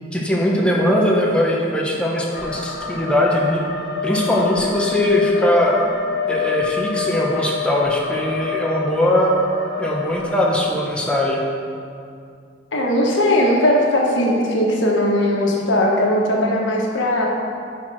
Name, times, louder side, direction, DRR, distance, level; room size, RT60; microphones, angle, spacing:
voice 1, 0.1-3.6 4.0-5.9 6.3-9.3 9.8-11.4, left 1 dB, 5° left, -3 dB, 1.0 m, -20 dB
sound 1, 2.3-10.6, left 6 dB, 55° left, 0.8 m, -28 dB
voice 2, 12.7-17.3, left 1 dB, 90° left, -1 dB, 1.2 m, -18 dB
10.5 x 4.6 x 4.7 m, 2.4 s
head